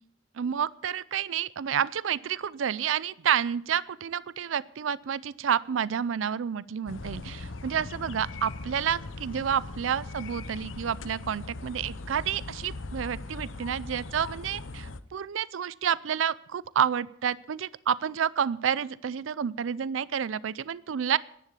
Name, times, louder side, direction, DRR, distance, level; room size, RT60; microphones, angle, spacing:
voice 1, 0.4-14.6 15.1-21.2, right 8 dB, 85° right, 20 dB, 0.4 m, -29 dB
sound 1, 6.9-15.0, left 3 dB, 85° left, 0.7 m, -40 dB
10.5 x 10.0 x 8.2 m, 0.68 s
head